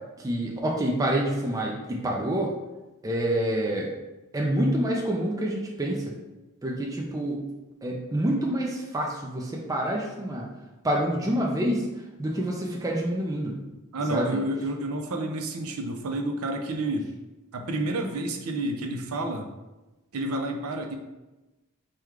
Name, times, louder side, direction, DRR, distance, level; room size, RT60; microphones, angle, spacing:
voice 1, 0.2-2.5 3.0-3.9 4.3-6.1 6.6-7.4 7.8-10.5 10.8-11.9 12.2-13.5 14.1-14.4, right 1 dB, 15° right, -2 dB, 0.4 m, -27 dB
voice 2, 13.9-17.1 17.5-19.5 20.1-20.9, right 1 dB, 70° right, 4 dB, 0.5 m, -30 dB
4.6 x 2.3 x 3.5 m, 1.1 s
head